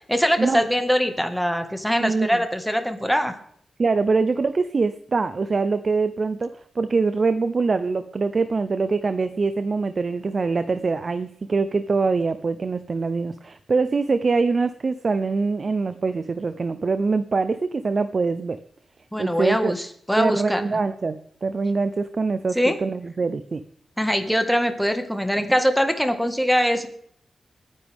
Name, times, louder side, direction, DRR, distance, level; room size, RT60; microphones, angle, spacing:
voice 1, 0.1-3.3 19.1-20.6 22.5-22.7 24.0-26.9, equal, ahead, 6 dB, 1.7 m, -22 dB
voice 2, 2.0-2.4 3.8-18.6 19.2-19.7 20.2-23.6, right 4 dB, 40° right, 11 dB, 0.6 m, -24 dB
29.0 x 9.9 x 3.6 m, 0.65 s
wide cardioid pair, 135°, 0 cm